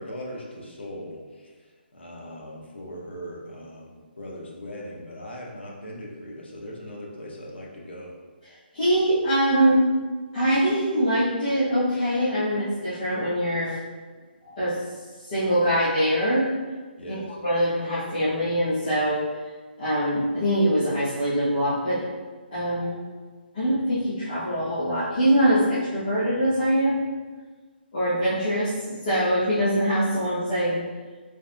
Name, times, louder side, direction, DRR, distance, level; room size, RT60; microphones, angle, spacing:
voice 1, 0.0-8.1 17.0-17.4, equal, 85° left, -3 dB, 1.2 m, -39 dB
voice 2, 8.7-9.8 10.3-13.8 14.4-14.8 15.2-16.5 17.1-19.2 19.8-22.0 22.5-23.0 23.5-27.0 27.9-30.8, equal, 30° left, -13 dB, 1.3 m, -23 dB
5.5 x 3.4 x 2.2 m, 1.4 s
hypercardioid pair, 175°, 6 cm